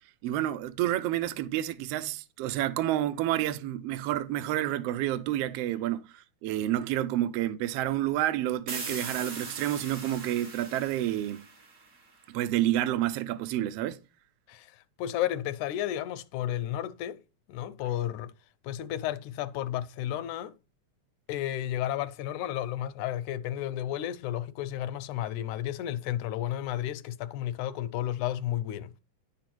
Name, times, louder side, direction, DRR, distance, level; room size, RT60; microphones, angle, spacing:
voice 1, 0.2-11.5 12.3-14.0, right 13 dB, 80° right, 1.5 m, -29 dB
sound 1, 8.7-12.3, right 4 dB, 45° right, 1.0 m, -40 dB
voice 2, 14.5-17.2 17.5-18.3 18.6-20.5 21.3-28.9, left 12 dB, 80° left, 2.1 m, -32 dB
10.5 x 4.8 x 6.0 m
omnidirectional pair, 3.4 m